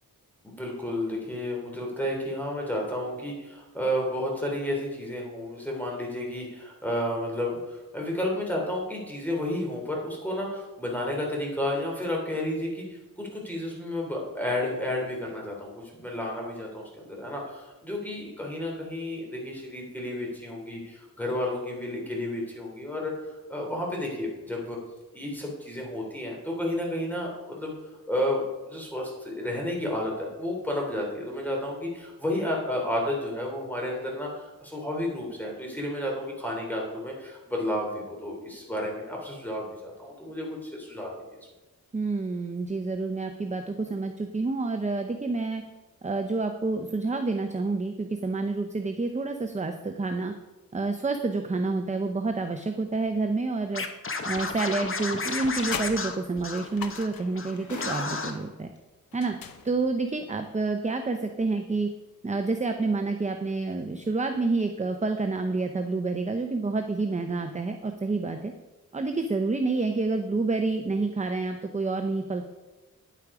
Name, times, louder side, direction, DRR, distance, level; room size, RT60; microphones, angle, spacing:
voice 1, 0.4-23.1 23.5-24.8 25.1-27.7 28.1-41.1, left 1 dB, 5° left, -1 dB, 3.2 m, -31 dB
voice 2, 41.9-45.6 46.0-50.3 50.7-53.8 54.2-58.7 59.1-59.4 59.6-61.9 62.2-68.5 68.9-72.4, right 3 dB, 20° right, 6 dB, 0.6 m, -28 dB
Scratching (performance technique), 53.7-57.1 57.3-57.5 57.8-58.3, left 4 dB, 40° left, 1.0 m, -32 dB
sound 1, 54.4-55.0 55.3-57.4 59.1-60.1, left 7 dB, 85° left, 0.8 m, -40 dB
sound 2, 56.2-56.3 56.5-58.8 59.7-59.8, left 2 dB, 60° left, 1.6 m, -43 dB
9.7 x 8.3 x 4.9 m, 1.1 s
wide cardioid pair, 85°, 34 cm